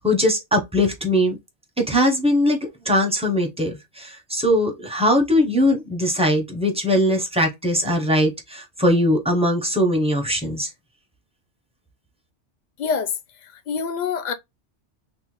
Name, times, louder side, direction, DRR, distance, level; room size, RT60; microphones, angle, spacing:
voice 1, 0.0-1.4 1.8-10.7, left 1 dB, 10° right, 0.4 m, -20 dB
voice 2, 12.8-14.3, left 6 dB, 55° left, 0.5 m, -26 dB
3.0 x 2.1 x 3.0 m
omnidirectional pair, 1.2 m